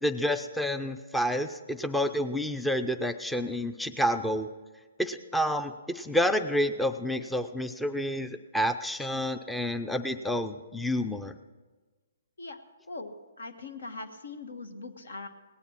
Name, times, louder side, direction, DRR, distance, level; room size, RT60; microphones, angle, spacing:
voice 1, 0.0-4.5 5.0-11.3, equal, 5° left, 10 dB, 0.5 m, -29 dB
voice 2, 12.4-15.3, left 3 dB, 75° left, 8 dB, 1.4 m, -41 dB
18.5 x 9.7 x 5.9 m, 1.3 s
hypercardioid pair, 135°, 0 cm